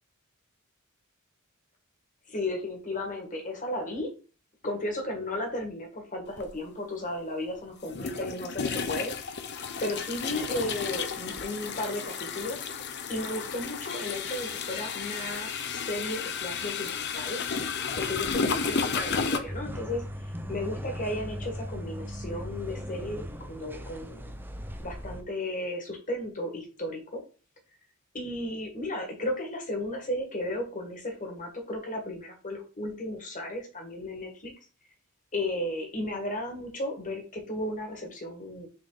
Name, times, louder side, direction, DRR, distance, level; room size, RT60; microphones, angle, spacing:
voice 1, 2.3-4.1 4.6-9.4 9.8-12.6 13.1-17.4 17.9-20.0 20.5-24.3 24.8-27.2 28.1-34.5 35.3-38.7, left 1 dB, 40° left, 2 dB, 1.7 m, -34 dB
sound 1, 6.4-6.5 7.9-19.4, left 5 dB, 55° left, 0.7 m, -32 dB
sound 2, 18.5-25.2, equal, 10° right, 0.5 m, -39 dB
6.7 x 3.7 x 3.9 m, 0.36 s
head